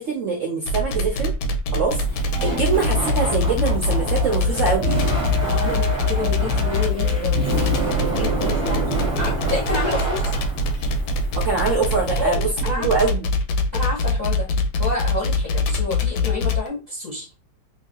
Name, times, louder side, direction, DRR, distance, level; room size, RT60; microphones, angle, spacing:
voice 1, 0.0-1.3 1.7-5.1 11.3-12.4 12.8-13.3, right 4 dB, 60° right, -2 dB, 0.8 m, -23 dB
sound 1, 0.7-16.7, left 2 dB, 70° left, 1.0 m, -23 dB
Laughter, 1.9-12.4, right 1 dB, 5° right, 1.2 m, -28 dB
sound 2, 2.3-3.2 4.2-8.5, right 12 dB, 90° right, 1.5 m, -33 dB
voice 2, 5.4-10.2 12.1-12.9 13.7-14.5 14.8-17.3, left 3 dB, 30° left, -3 dB, 0.8 m, -29 dB
3.1 x 2.7 x 2.8 m, 0.30 s
omnidirectional pair, 2.1 m